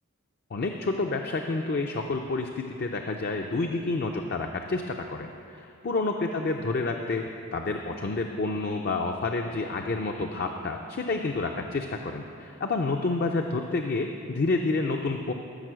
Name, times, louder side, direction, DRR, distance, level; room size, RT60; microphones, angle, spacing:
voice 1, 0.5-7.2 7.5-15.3, left 3 dB, 45° left, 3 dB, 0.5 m, -29 dB
13.5 x 6.5 x 6.2 m, 2.6 s
head